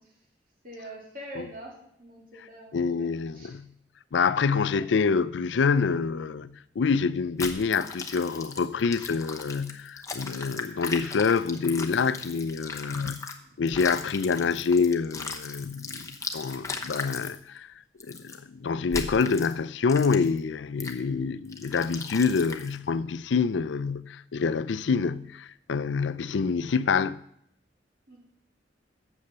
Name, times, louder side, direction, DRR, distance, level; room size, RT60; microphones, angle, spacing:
voice 1, 0.6-3.1 3.3-3.5 4.7-4.9 28.1-28.2, right 1 dB, 50° right, 2.7 m, -44 dB
voice 2, 2.7-3.7 4.1-17.7 18.0-27.2, left 5 dB, 75° left, 0.4 m, -26 dB
sound 1, 7.4-13.4 13.7-17.4 18.0-18.4 18.9-19.5 19.9-20.4 20.8-21.0 21.5-22.8, left 4 dB, 20° left, 0.9 m, -37 dB
8.5 x 7.1 x 6.7 m
head